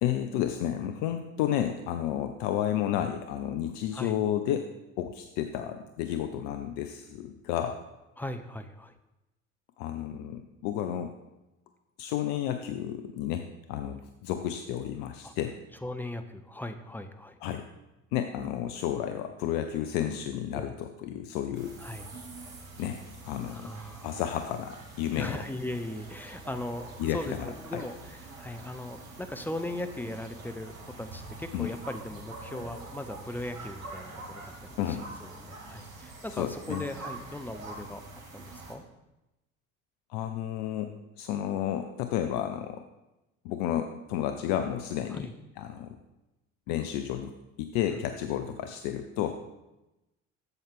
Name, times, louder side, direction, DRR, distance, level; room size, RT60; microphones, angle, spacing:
voice 1, 0.0-4.7 5.0-7.8 9.8-11.1 12.0-15.6 17.4-17.6 18.1-21.8 22.8-23.0 23.2-23.7 24.0-25.4 27.0-27.5 27.7-27.8 31.5-31.7 34.8-35.0 36.3-36.8 40.1-42.8 43.4-45.3 45.6-46.0 46.7-47.3 47.6-49.4, left 10 dB, 55° left, 7 dB, 0.6 m, -31 dB
voice 2, 8.2-8.9 15.2-15.3 15.8-17.4 20.5-20.7 21.8-22.1 23.5-24.2 25.2-34.5 34.9-38.0 38.3-38.8 45.1-45.3 47.9-48.0, left 1 dB, 5° left, 8 dB, 0.4 m, -38 dB
sound 1, 21.5-38.8, right 2 dB, 85° right, 1.1 m, -45 dB
7.9 x 7.0 x 3.6 m, 0.98 s
figure-of-eight pair, 55°, 40 cm